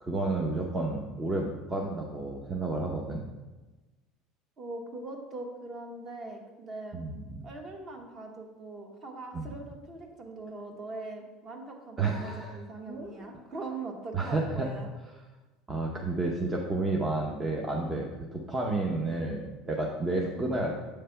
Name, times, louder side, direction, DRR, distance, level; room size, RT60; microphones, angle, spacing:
voice 1, 0.0-3.3 6.9-7.4 9.3-9.5 12.0-12.6 12.9-13.4 14.1-14.7 15.7-20.7, right 2 dB, 15° right, 0 dB, 0.6 m, -31 dB
voice 2, 4.6-7.0 7.4-14.9 20.3-20.6, right 2 dB, 35° right, 3 dB, 1.1 m, -41 dB
7.7 x 3.3 x 5.6 m, 1.2 s
cardioid pair, 145°, 0 cm